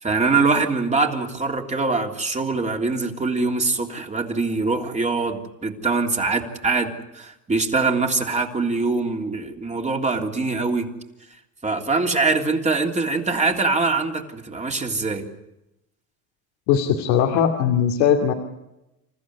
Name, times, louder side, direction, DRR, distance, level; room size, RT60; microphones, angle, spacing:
voice 1, 0.0-10.9 11.6-15.3, right 3 dB, 20° right, 2 dB, 3.3 m, -23 dB
voice 2, 16.7-18.3, left 8 dB, 90° left, 2 dB, 2.6 m, -19 dB
28.0 x 15.0 x 9.8 m, 0.93 s
cardioid pair, 115°, 36 cm